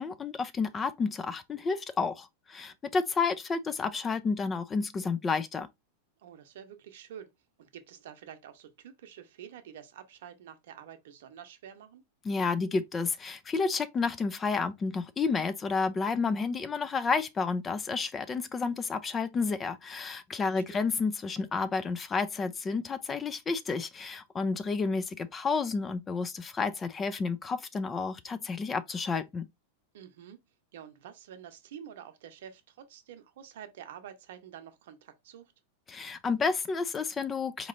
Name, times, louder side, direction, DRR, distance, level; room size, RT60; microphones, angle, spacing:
voice 1, 0.0-5.7 12.2-29.5 35.9-37.7, left 4 dB, 20° left, 0.4 m, -31 dB
voice 2, 6.2-7.3 7.6-12.0 20.4-20.9 29.9-30.4 30.7-35.5, right 9 dB, 75° right, 0.8 m, -48 dB
4.1 x 2.9 x 2.5 m
hypercardioid pair, 125°, 0 cm